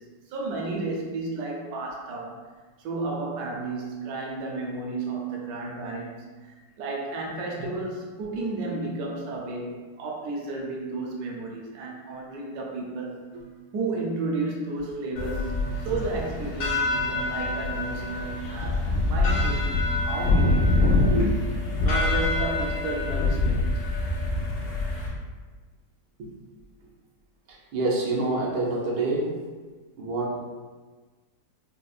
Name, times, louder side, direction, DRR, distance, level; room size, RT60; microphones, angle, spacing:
voice 1, 0.0-2.4 2.8-13.2 13.7-15.5 15.8-21.0 21.8-23.7, right 3 dB, 70° right, -1 dB, 1.0 m, -32 dB
sound 1, 15.2-25.1, left 2 dB, 90° left, 1.5 m, -25 dB
voice 2, 27.7-29.3 30.0-30.4, right 2 dB, 90° right, -4 dB, 1.4 m, -27 dB
5.2 x 2.1 x 2.4 m, 1.4 s
omnidirectional pair, 1.9 m